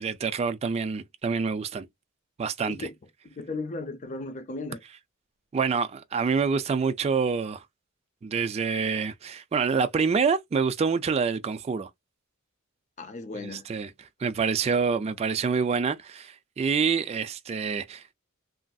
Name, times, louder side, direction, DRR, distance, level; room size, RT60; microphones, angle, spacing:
voice 1, 0.0-1.9 2.4-2.9 5.5-7.6 8.2-11.9 13.4-13.9 14.2-18.1, right 5 dB, 30° right, 0.3 m, -27 dB
voice 2, 3.2-4.8 13.0-13.7, left 3 dB, 35° left, 0.5 m, -36 dB
3.1 x 2.5 x 2.2 m
head